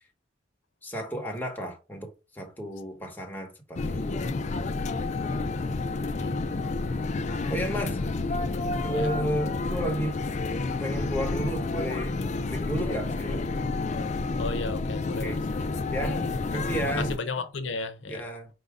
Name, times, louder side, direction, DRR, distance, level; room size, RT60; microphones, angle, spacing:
voice 1, 0.8-4.2 5.7-5.8 7.3-8.0 8.8-10.2 10.8-12.2 12.5-13.4 15.2-15.4 15.9-16.2 16.5-17.1 18.1-18.5, right 1 dB, 10° left, 1.1 m, -32 dB
sound 1, 3.8-17.2, left 3 dB, 40° left, 0.4 m, -30 dB
voice 2, 6.0-6.4 8.9-9.1 14.4-15.3 16.5-18.3, left 3 dB, 85° left, 0.7 m, -34 dB
4.8 x 2.7 x 3.5 m
head